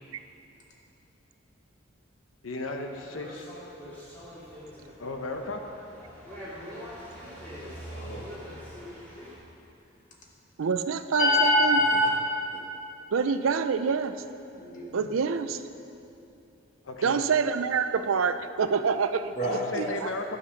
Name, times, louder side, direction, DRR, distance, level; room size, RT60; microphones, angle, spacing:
voice 1, 2.4-3.5 5.0-5.6 16.8-17.2 19.5-20.4, left 2 dB, 80° left, 4 dB, 0.9 m, -35 dB
sound 1, 2.6-9.4, equal, 10° left, 2.3 m, -43 dB
voice 2, 7.9-8.3 11.2-12.1 14.5-15.0 19.3-20.0, left 1 dB, 40° left, -3 dB, 1.7 m, -25 dB
voice 3, 10.6-11.8 13.1-14.1 14.9-15.6 17.0-19.3 19.7-20.1, right 5 dB, 85° right, 11 dB, 0.5 m, -26 dB
11.5 x 7.4 x 5.8 m, 2.7 s
head